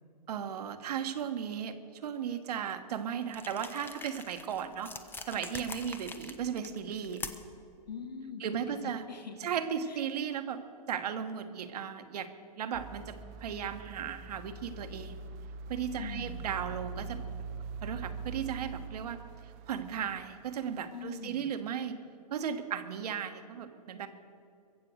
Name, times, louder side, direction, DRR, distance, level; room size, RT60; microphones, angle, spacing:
voice 1, 0.3-1.7 2.0-4.9 5.3-7.2 8.4-9.1 9.4-12.3 12.6-15.2 15.7-17.2 17.8-19.2 19.7-22.0 22.3-24.1, right 8 dB, 70° right, 8 dB, 1.3 m, -36 dB
sound 1, 3.3-7.6, left 3 dB, 10° left, 0.8 m, -45 dB
voice 2, 7.9-9.4 9.9-10.0 16.0-16.4 20.9-21.5, left 5 dB, 85° left, 6 dB, 1.9 m, -43 dB
sound 2, 12.7-21.0 21.4-21.5, right 4 dB, 35° right, 0.7 m, -43 dB
22.5 x 7.6 x 6.4 m, 2.5 s
hypercardioid pair, 125°, 21 cm